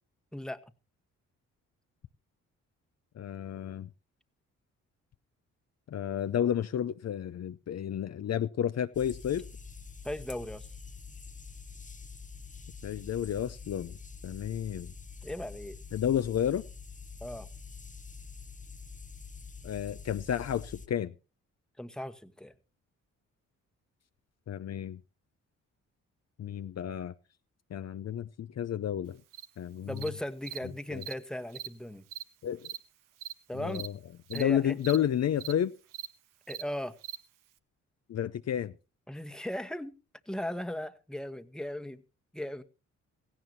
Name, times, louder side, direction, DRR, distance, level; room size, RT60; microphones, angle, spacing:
voice 1, 3.2-3.9 5.9-9.4 12.8-14.0 14.2-14.9 15.9-16.6 19.6-21.1 24.5-25.0 26.4-27.1 27.7-29.2 29.6-29.9 30.9-31.0 32.4-32.6 33.5-33.9 34.3-35.7 38.1-38.7, left 10 dB, 50° left, 0.6 m, -31 dB
sound 1, 8.9-20.9, left 4 dB, 25° left, 0.9 m, -46 dB
voice 2, 10.0-10.7 15.2-15.8 17.2-17.5 21.8-22.5 29.9-32.1 33.5-33.8 34.3-34.7 36.5-37.0 39.1-39.9 40.3-42.0 42.3-42.6, left 1 dB, ahead, 1.2 m, -37 dB
Cricket, 29.3-29.5 30.0-30.1 30.5-30.6 31.0-31.1 31.5-31.7 32.1-32.2 32.6-32.8 33.2-33.3 33.7-33.9 34.3-34.4 34.8-35.0 35.4-35.5 35.9-36.1 36.5-36.6 37.0-37.2, right 11 dB, 75° right, 0.9 m, -40 dB
17.0 x 15.5 x 2.8 m
supercardioid pair, 50°, 33 cm